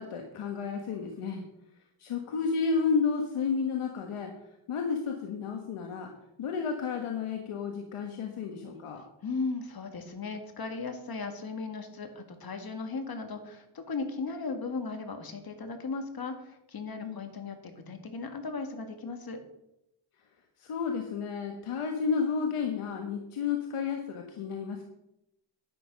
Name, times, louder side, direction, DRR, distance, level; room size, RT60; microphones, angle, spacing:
voice 1, 0.0-1.4 2.0-4.3 4.7-6.1 6.4-9.0 17.0-17.3 20.6-24.8, left 5 dB, 85° left, 3 dB, 1.5 m, -31 dB
voice 2, 9.2-19.4, left 4 dB, 45° left, 6 dB, 2.0 m, -37 dB
11.5 x 9.4 x 5.3 m, 0.84 s
wide cardioid pair, 125°, 50 cm